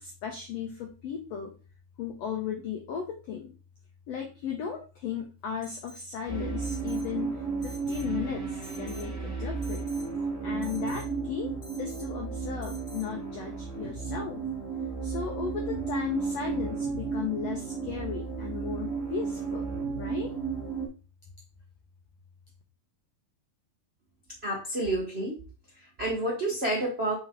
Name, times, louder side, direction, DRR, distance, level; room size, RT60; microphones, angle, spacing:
voice 1, 0.0-1.5 2.0-3.5 4.1-9.9 10.4-11.5 11.8-14.4 15.0-19.7 20.0-20.3, left 7 dB, 80° left, 2 dB, 1.4 m, -36 dB
Alarm, 5.6-6.1 6.6-7.1 7.6-8.1 8.6-9.1 9.6-10.1 10.6-11.1 11.6-12.1 12.6-13.1, left 1 dB, 35° left, 0.9 m, -48 dB
sound 1, 6.3-20.9, right 5 dB, 5° right, 2.2 m, -33 dB
voice 2, 24.4-25.3 25.8-27.1, right 1 dB, 70° right, -3 dB, 0.6 m, -29 dB
6.5 x 4.5 x 3.7 m, 0.33 s
omnidirectional pair, 4.1 m